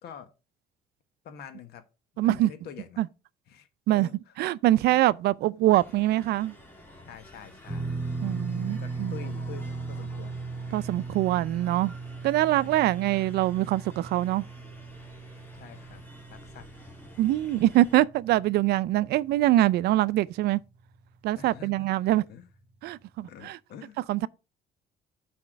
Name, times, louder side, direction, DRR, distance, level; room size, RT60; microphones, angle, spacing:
voice 1, 0.0-0.3 1.2-1.8 2.1-3.0 3.5-4.3 4.9-5.0 7.1-7.9 8.5-10.4 10.7-10.8 12.5-12.7 15.6-16.0 16.3-16.9 17.5-17.6 21.3-22.5 23.2-24.0, left 8 dB, 70° left, 1.4 m, -46 dB
voice 2, 2.2-2.5 3.0-3.1 3.9-4.1 4.4-6.5 8.2-9.1 10.7-11.9 12.2-14.5 17.2-20.6 21.2-22.2 22.8-23.6 24.1-24.3, right 15 dB, 75° right, 0.4 m, -24 dB
sound 1, 5.7-18.0, left 1 dB, 10° left, 2.5 m, -51 dB
sound 2, 7.7-19.9 20.2-20.4 22.1-22.2, right 3 dB, 5° right, 2.0 m, -38 dB
6.1 x 4.3 x 6.4 m
cardioid pair, 110°, 17 cm